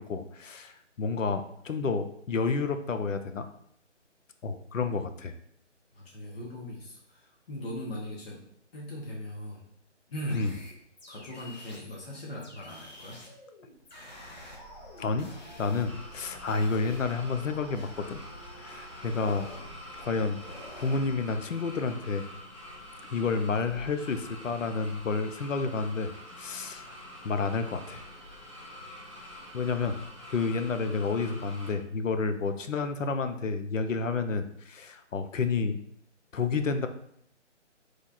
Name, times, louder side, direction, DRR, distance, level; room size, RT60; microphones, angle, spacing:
voice 1, 0.0-3.5 4.4-5.3 10.4-10.5 15.0-15.3 15.6-18.2 18.6-19.5 20.0-22.3 23.1-26.1 26.4-26.9 27.2-28.0 29.5-30.0 30.3-35.8 36.3-36.9, left 4 dB, 90° left, 9 dB, 0.6 m, -30 dB
voice 2, 5.9-8.4 8.7-9.6 10.1-10.4 11.1-13.2, left 1 dB, 55° left, -4 dB, 1.1 m, -39 dB
sound 1, 10.3-12.0 12.4-16.2 16.5-18.4 19.0-19.7 20.3-21.0, left 1 dB, 35° left, 0.7 m, -49 dB
sound 2, 14.1-21.2, right 1 dB, 20° left, 1.3 m, -51 dB
sound 3, 15.8-31.7, left 1 dB, 25° right, 0.4 m, -46 dB
3.2 x 2.4 x 3.9 m, 0.68 s
figure-of-eight pair, 155°, 37 cm